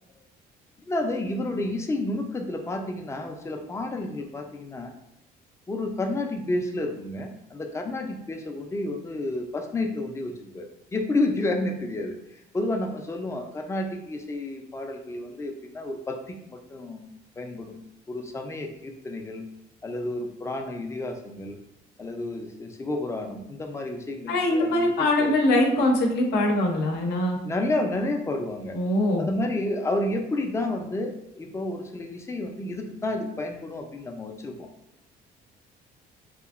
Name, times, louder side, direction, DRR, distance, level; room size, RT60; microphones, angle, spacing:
voice 1, 0.8-4.9 5.7-17.0 17.4-17.8 18.1-19.4 19.8-21.6 22.0-25.3 27.4-28.8 29.2-34.7, left 2 dB, 15° left, 3 dB, 0.4 m, -30 dB
voice 2, 24.3-27.4 28.7-29.3, left 1 dB, 75° left, 1 dB, 0.6 m, -22 dB
2.8 x 2.5 x 2.4 m, 0.81 s
cardioid pair, 110°, 17 cm